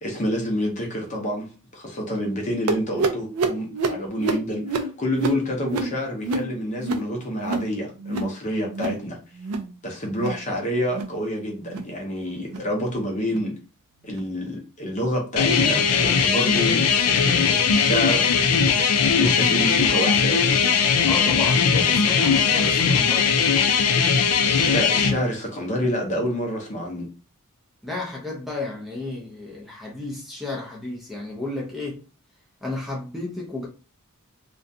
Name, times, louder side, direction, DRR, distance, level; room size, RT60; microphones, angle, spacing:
voice 1, 0.0-9.2 9.8-13.6 14.0-18.5 19.2-20.7 24.5-27.1, equal, 35° left, 0.7 m, -28 dB
sound 1, 2.7-7.7 8.0-8.4 8.6-9.0 9.3-9.7 10.1-10.4 10.8-11.2 11.6-11.9 12.4-12.7 13.3-13.5 14.1-14.3 15.0-15.1 15.8-15.9, right 3 dB, 85° right, 0.4 m, -28 dB
sound 2, 15.4-25.1, left 6 dB, 75° left, 0.4 m, -19 dB
voice 2, 21.1-23.3 27.8-32.0 32.6-33.7, left 2 dB, ahead, 0.5 m, -32 dB
2.5 x 2.2 x 2.6 m
head